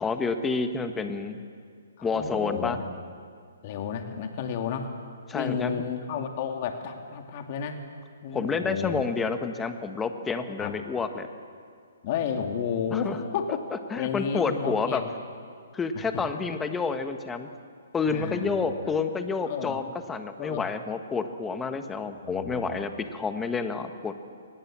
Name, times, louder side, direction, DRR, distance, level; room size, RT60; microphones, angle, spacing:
voice 1, 0.0-1.4 2.0-2.8 5.3-5.8 8.3-11.3 12.9-13.2 13.9-15.0 15.7-17.5 17.9-24.1, left 4 dB, 10° left, 7 dB, 1.4 m, -29 dB
voice 2, 2.0-2.8 3.6-4.9 5.3-7.8 8.2-9.0 10.6-10.7 12.0-13.6 14.0-15.1 16.0-16.2 18.1-18.9 19.5-19.8 20.4-20.7 22.2-22.9, left 7 dB, 40° left, 5 dB, 2.2 m, -32 dB
23.5 x 20.0 x 7.6 m, 2.1 s
hypercardioid pair, 155°, 0 cm